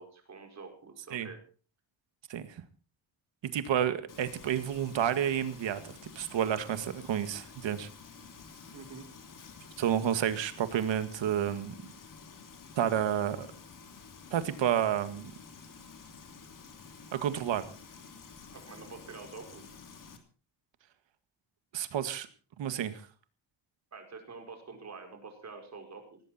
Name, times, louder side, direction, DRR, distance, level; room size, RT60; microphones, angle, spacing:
voice 1, 0.0-1.4 8.7-9.1 18.5-19.7 23.9-26.2, right 4 dB, 35° right, 4 dB, 5.0 m, -47 dB
voice 2, 2.3-2.6 3.5-7.9 9.8-11.8 12.8-13.5 14.3-15.3 17.1-17.6 21.7-22.3 22.6-23.0, right 9 dB, 75° right, 11 dB, 2.0 m, -30 dB
Frying (food), 4.1-20.2, left 5 dB, 45° left, 3.1 m, -51 dB
18.5 x 17.0 x 4.3 m, 0.38 s
wide cardioid pair, 155°, 45 cm